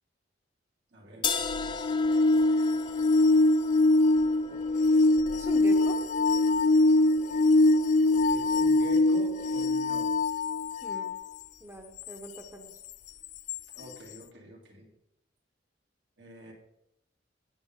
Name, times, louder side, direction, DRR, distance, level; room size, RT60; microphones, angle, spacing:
voice 1, 0.9-1.8 2.3-2.4 2.7-3.1 4.1-4.2 4.5-4.6 8.2-10.1 13.7-14.9 16.2-16.5, right 1 dB, 80° right, -1 dB, 2.9 m, -46 dB
sound 1, 1.2-7.2, left 6 dB, 25° left, 0.8 m, -38 dB
sound 2, 1.4-11.2 13.5-13.6, left 2 dB, 40° left, 0.3 m, -23 dB
voice 2, 5.3-6.1 10.8-11.2 11.6-12.7, right 2 dB, 15° right, 4 dB, 0.8 m, -42 dB
13.0 x 8.6 x 3.7 m, 0.83 s
head